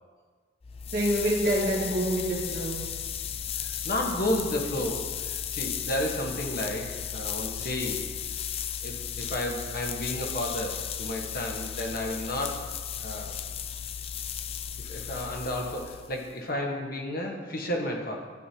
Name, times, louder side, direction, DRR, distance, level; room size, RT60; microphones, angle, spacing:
sound 1, 0.6-16.4, left 9 dB, 30° left, 0.3 m, -35 dB
voice 1, 0.9-3.0, right 1 dB, 55° right, -4 dB, 2.1 m, -27 dB
voice 2, 3.5-8.2 8.8-12.6 13.0-13.4 14.8-18.2, left 1 dB, 50° left, 1 dB, 1.2 m, -32 dB
13.0 x 7.7 x 2.9 m, 1.5 s
head